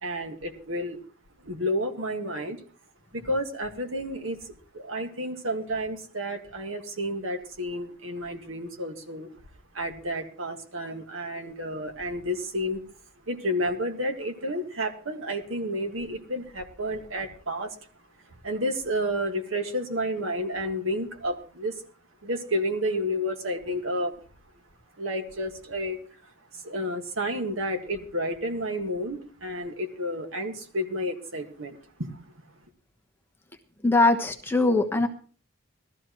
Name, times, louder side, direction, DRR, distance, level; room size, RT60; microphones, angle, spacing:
voice 1, 0.0-1.0 1.4-2.6 3.1-9.3 9.7-12.8 13.3-17.8 18.3-21.8 22.2-24.1 25.0-32.3, equal, 75° right, 1.8 m, -31 dB
voice 2, 33.8-35.1, left 2 dB, 10° left, 1.1 m, -21 dB
19.0 x 13.5 x 3.1 m
head